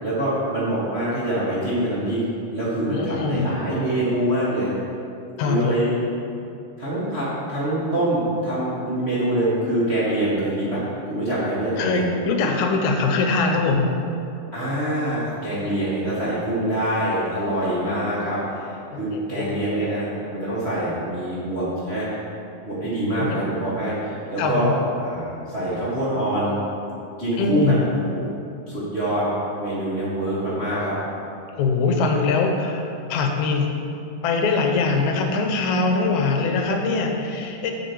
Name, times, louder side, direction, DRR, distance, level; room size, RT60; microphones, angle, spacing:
voice 1, 0.0-2.2 2.5-4.7 5.5-5.9 6.8-10.8 11.1-12.1 14.5-22.1 22.6-24.7 25.0-26.5 27.2-27.8 28.1-28.2 28.7-29.3 29.6-31.0, right 1 dB, 35° right, -9 dB, 1.0 m, -25 dB
voice 2, 2.9-3.5 5.4-5.7 11.8-13.9 18.9-19.6 23.1-23.5 24.4-24.7 27.4-27.8 31.6-33.7 34.2-37.7, left 4 dB, 80° left, 3 dB, 2.1 m, -22 dB
8.0 x 6.8 x 4.6 m, 2.7 s
omnidirectional pair, 3.5 m